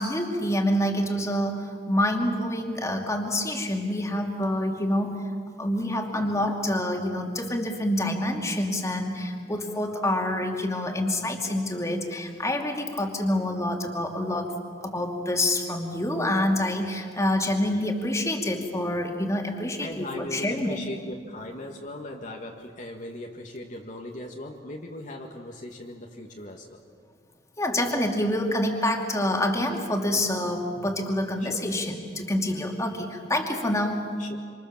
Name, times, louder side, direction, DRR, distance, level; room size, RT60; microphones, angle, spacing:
voice 1, 0.0-5.2 5.6-14.5 14.8-20.8 27.6-34.0, left 1 dB, 15° left, 2 dB, 2.6 m, -27 dB
voice 2, 19.8-26.8 31.4-31.7 34.2-34.4, left 1 dB, 45° left, 0 dB, 1.8 m, -39 dB
26.5 x 26.5 x 7.3 m, 2.1 s
head